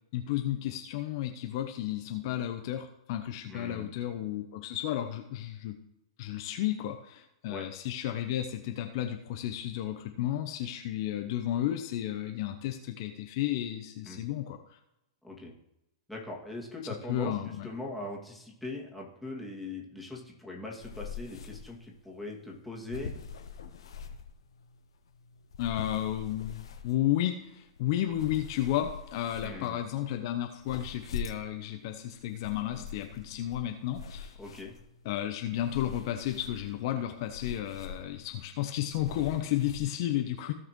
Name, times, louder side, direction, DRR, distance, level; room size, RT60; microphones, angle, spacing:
voice 1, 0.1-5.7 6.2-14.6 17.1-17.7 25.6-34.3 35.0-40.5, left 12 dB, 50° left, 6 dB, 0.8 m, -32 dB
voice 2, 3.5-3.9 7.5-7.7 14.1-14.2 15.2-15.5 16.1-17.4 17.6-23.1 29.4-29.8 34.4-34.7, left 2 dB, ahead, -3 dB, 2.3 m, -41 dB
sound 1, 20.8-39.8, left 6 dB, 65° left, 1.1 m, -45 dB
16.5 x 5.9 x 3.1 m, 0.87 s
figure-of-eight pair, 105°, 3 cm